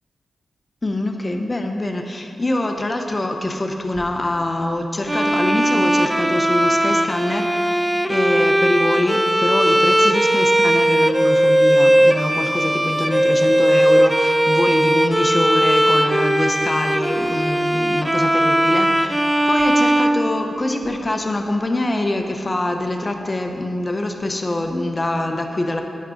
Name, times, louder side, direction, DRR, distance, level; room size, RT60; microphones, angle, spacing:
voice 1, 0.8-25.8, left 1 dB, 25° left, 4 dB, 0.9 m, -24 dB
Bowed string instrument, 5.1-20.9, right 1 dB, 5° right, 0.3 m, -18 dB
10.5 x 9.3 x 3.8 m, 2.8 s
wide cardioid pair, 135°, 0 cm